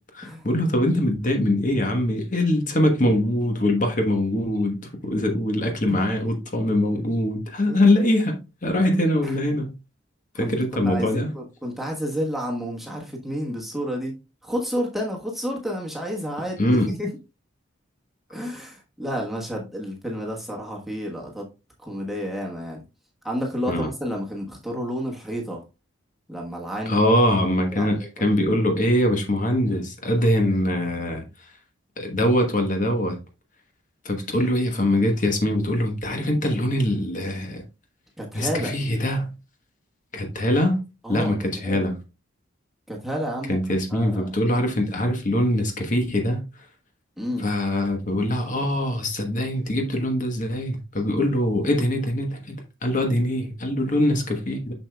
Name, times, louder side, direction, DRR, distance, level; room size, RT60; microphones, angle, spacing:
voice 1, 0.1-4.8 5.0-9.7 10.3-11.3 16.6-16.9 23.7-23.9 26.9-31.5 32.0-33.2 34.0-37.6 38.3-39.3 40.1-40.8 41.1-42.0 43.5-46.6 47.4-54.7, left 1 dB, 40° left, 1.1 m, -23 dB
voice 2, 7.7-8.1 9.2-9.4 10.4-16.6 16.9-17.1 18.3-21.5 21.8-22.8 23.2-25.6 26.3-27.0 27.7-28.1 38.2-38.7 41.0-41.3 41.6-41.9 42.9-43.6 43.9-44.3 47.2-47.5, equal, ahead, 1.3 m, -30 dB
7.1 x 6.4 x 2.3 m
head